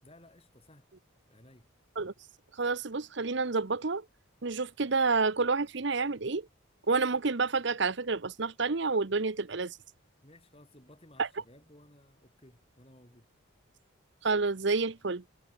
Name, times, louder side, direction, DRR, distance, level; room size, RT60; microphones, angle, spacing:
voice 1, 0.0-0.9 1.3-1.7 10.2-13.3, left 1 dB, 30° left, 5.8 m, -57 dB
voice 2, 2.6-4.0 4.4-6.5 6.9-9.8 11.2-11.3 14.2-15.2, right 4 dB, 60° right, 0.9 m, -29 dB
head